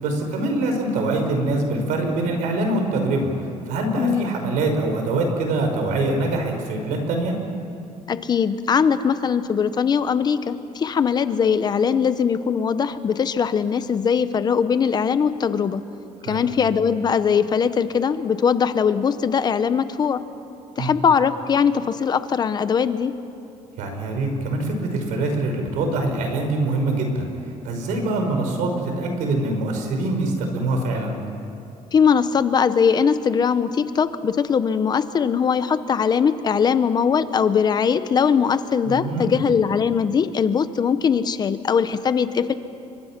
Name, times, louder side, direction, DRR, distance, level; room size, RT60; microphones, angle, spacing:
voice 1, 0.0-7.4 16.3-16.5 20.8-20.9 23.8-27.3 27.6-31.2 38.9-39.4, right 2 dB, 90° right, 4 dB, 5.1 m, -24 dB
voice 2, 4.0-4.4 8.1-15.8 16.2-20.2 20.8-23.1 31.9-42.5, left 6 dB, 35° left, 12 dB, 0.9 m, -21 dB
29.5 x 24.0 x 6.0 m, 2.7 s
cardioid pair, 150°, 13 cm